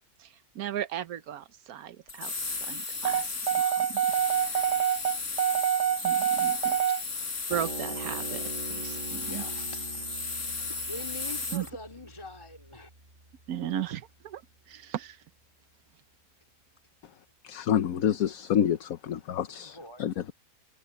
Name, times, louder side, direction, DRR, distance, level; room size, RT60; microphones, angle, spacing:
voice 1, 0.2-4.1 4.4-4.7 6.0-6.8 7.5-9.5 11.5-11.7 13.5-14.4 14.7-15.2, right 10 dB, 75° right, 1.4 m, -37 dB
sound 1, 2.1-11.7, left 4 dB, 55° left, 4.6 m, -35 dB
sound 2, 3.0-7.0, right 10 dB, 55° right, 0.9 m, -26 dB
sound 3, 7.5-14.2, right 3 dB, 35° right, 2.2 m, -43 dB
voice 2, 9.1-9.8 10.5-12.9 17.1-17.2 19.3-20.3, left 2 dB, 20° left, 3.2 m, -44 dB
voice 3, 17.4-20.1, left 9 dB, 70° left, 1.3 m, -28 dB
omnidirectional pair, 1.6 m